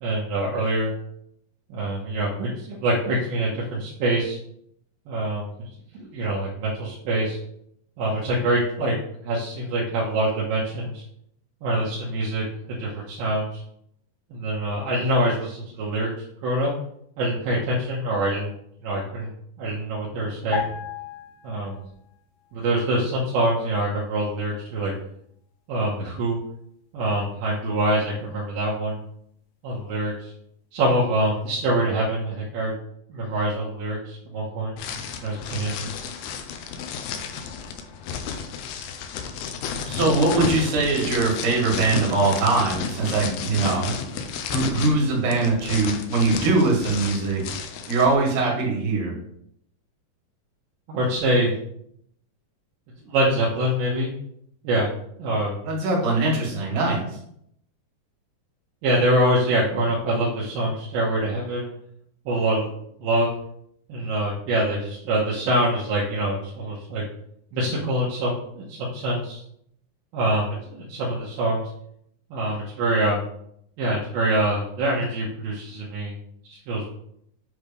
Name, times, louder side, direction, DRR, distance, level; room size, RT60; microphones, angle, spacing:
voice 1, 0.0-0.9 1.7-4.4 5.1-5.5 5.9-7.4 8.0-8.9 9.2-11.0 11.6-13.6 14.3-16.1 16.4-16.7 17.2-18.5 18.8-19.3 19.6-20.7 21.4-21.8 22.5-24.9 25.7-26.4 26.9-29.0 29.6-30.3 30.7-32.7 33.1-34.7 35.2-35.9 50.9-51.5 53.1-54.1 54.6-54.9 55.2-55.6 58.8-61.7 62.3-62.7 63.0-63.3 63.9-67.0 67.5-69.4 70.1-71.6 72.3-73.2 73.8-76.1 76.4-76.8, right 1 dB, 80° right, -5 dB, 2.9 m, -25 dB
sound 1, 20.5-22.1 22.4-22.6, left 6 dB, 55° left, 1.8 m, -33 dB
sound 2, 34.8-48.1, left 6 dB, 90° left, 2.7 m, -32 dB
voice 2, 39.9-43.9 44.5-47.4 47.9-49.1 55.6-57.0, right 3 dB, 60° right, -3 dB, 3.4 m, -22 dB
7.9 x 3.3 x 5.2 m, 0.71 s
omnidirectional pair, 4.3 m